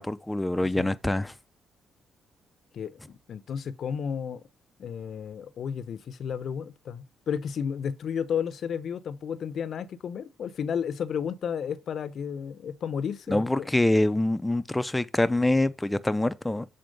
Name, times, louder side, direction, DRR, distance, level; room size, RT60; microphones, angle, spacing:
voice 1, 0.0-1.3 13.3-16.7, left 1 dB, 10° left, 0.5 m, -25 dB
voice 2, 2.7-4.4 4.8-13.7, left 7 dB, 60° left, 0.7 m, -33 dB
7.7 x 4.2 x 5.3 m
cardioid pair, 110°, 0 cm